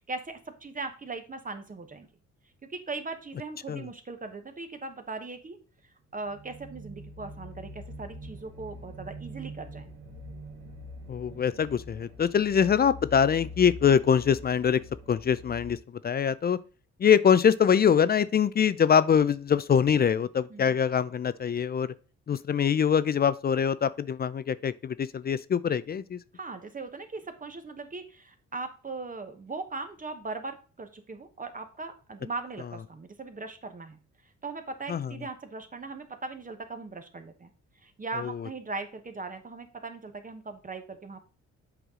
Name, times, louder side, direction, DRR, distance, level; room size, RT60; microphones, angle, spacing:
voice 1, 0.0-2.1 2.6-5.6 5.8-9.9 20.5-20.7 26.3-37.5 37.7-41.2, right 3 dB, 25° right, 1.0 m, -39 dB
sound 1, 6.2-15.7, left 1 dB, 60° right, 1.9 m, -44 dB
voice 2, 11.1-14.8 15.1-15.8 16.0-16.6 17.0-21.9 22.3-26.2 34.9-35.1 38.2-38.3, left 7 dB, 35° left, 0.4 m, -24 dB
8.0 x 4.7 x 3.7 m
cardioid pair, 90°, 30 cm